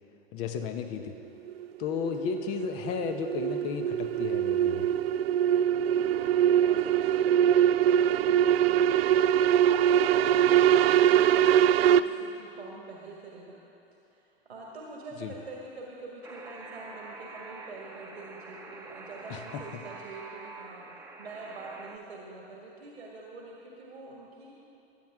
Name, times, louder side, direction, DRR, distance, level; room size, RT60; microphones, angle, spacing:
voice 1, 0.3-1.1 1.8-4.9 15.2-15.3 19.3-19.6, left 6 dB, 45° left, 7 dB, 1.3 m, -34 dB
sound 1, 1.5-12.0, right 10 dB, 70° right, 0.5 m, -23 dB
voice 2, 5.7-13.6 14.1-24.5, right 3 dB, 85° right, -3 dB, 1.9 m, -45 dB
Alarm, 16.2-22.0, right 3 dB, 10° right, 1.1 m, -46 dB
22.0 x 9.2 x 3.7 m, 2.8 s
figure-of-eight pair, 90°, 31 cm